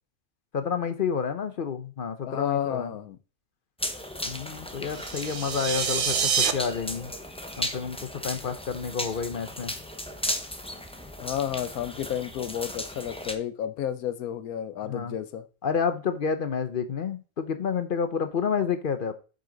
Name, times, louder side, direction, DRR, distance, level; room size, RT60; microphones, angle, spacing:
voice 1, 0.5-2.9 4.2-7.1 7.6-9.8 14.8-15.1 15.6-19.1, left 6 dB, 50° left, 9 dB, 0.7 m, -29 dB
voice 2, 2.2-3.2 11.2-15.5, left 10 dB, 85° left, 13 dB, 1.2 m, -31 dB
sound 1, 3.8-13.3, left 1 dB, 5° left, 0.5 m, -36 dB
sound 2, 4.9-6.5, right 7 dB, 50° right, 0.7 m, -26 dB
7.7 x 5.2 x 3.9 m, 0.34 s
omnidirectional pair, 1.5 m